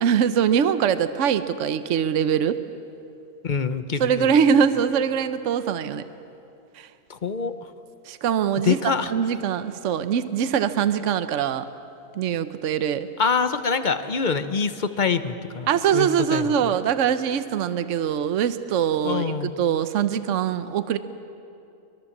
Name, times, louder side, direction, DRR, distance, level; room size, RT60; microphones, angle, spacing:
voice 1, 0.0-2.6 4.0-6.0 6.7-6.9 8.1-8.8 9.1-11.7 12.1-13.1 15.7-19.3 19.6-21.0, right 8 dB, 70° right, 11 dB, 1.1 m, -22 dB
voice 2, 3.4-4.3 7.1-7.7 8.6-9.1 13.2-16.7 19.0-19.5, left 5 dB, 40° left, 10 dB, 1.0 m, -25 dB
24.0 x 22.5 x 7.3 m, 2.8 s
omnidirectional pair, 1.4 m